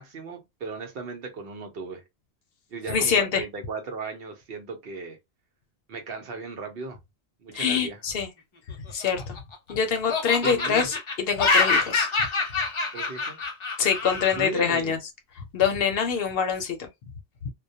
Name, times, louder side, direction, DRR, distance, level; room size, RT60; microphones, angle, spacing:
voice 1, 0.0-2.0 2.7-5.2 5.9-7.0 7.4-8.0 10.4-10.9 12.9-13.4 14.3-14.9, right 4 dB, 65° right, 0.9 m, -36 dB
voice 2, 2.9-3.4 7.5-8.3 8.9-9.4 9.7-12.1 13.8-15.0 15.5-16.9 17.4-17.5, left 6 dB, 65° left, 0.8 m, -25 dB
Laughter, 8.9-9.7 10.1-14.5, left 3 dB, 45° left, 0.4 m, -26 dB
2.2 x 2.1 x 2.7 m
omnidirectional pair, 1.1 m